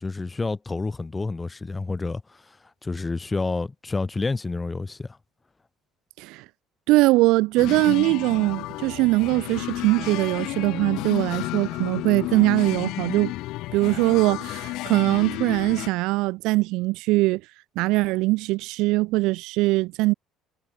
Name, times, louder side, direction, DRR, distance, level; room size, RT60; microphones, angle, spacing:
voice 1, 0.0-2.4 2.8-5.1, left 3 dB, 10° left, 1.2 m, -29 dB
voice 2, 6.9-13.3 13.7-17.4 17.8-20.1, right 21 dB, 70° right, 0.3 m, -22 dB
sound 1, 7.6-15.9, left 18 dB, 65° left, 0.4 m, -32 dB
cardioid pair, 180°, 0 cm